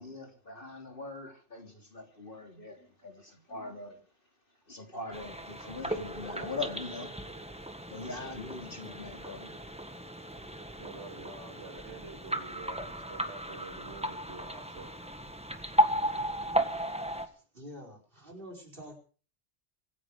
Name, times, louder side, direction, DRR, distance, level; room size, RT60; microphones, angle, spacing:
voice 1, 0.0-4.0 4.7-7.1 7.9-10.8, left 3 dB, 50° left, 3 dB, 3.5 m, -42 dB
sound 1, 5.1-17.3, right 1 dB, 5° right, 1.4 m, -35 dB
voice 2, 10.8-14.9, right 3 dB, 70° right, 5 dB, 3.0 m, -48 dB
voice 3, 17.2-19.0, equal, 50° right, 0 dB, 5.3 m, -47 dB
25.0 x 10.0 x 5.1 m, 0.40 s
omnidirectional pair, 1.2 m